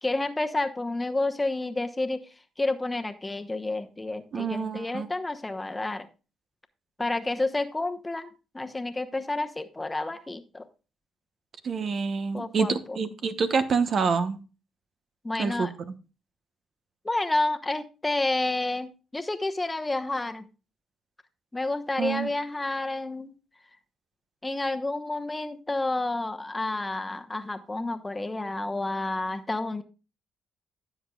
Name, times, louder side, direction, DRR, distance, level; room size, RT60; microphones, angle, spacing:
voice 1, 0.0-2.2 2.6-6.1 7.0-10.7 12.3-13.0 15.2-15.7 17.0-20.5 21.5-23.3 24.4-29.8, left 2 dB, 20° left, 7 dB, 1.0 m, -30 dB
voice 2, 4.3-5.1 11.6-14.4 15.4-15.7 22.0-22.3, right 5 dB, 55° right, 10 dB, 1.0 m, -27 dB
15.5 x 7.1 x 2.3 m, 0.32 s
supercardioid pair, 70°, 0 cm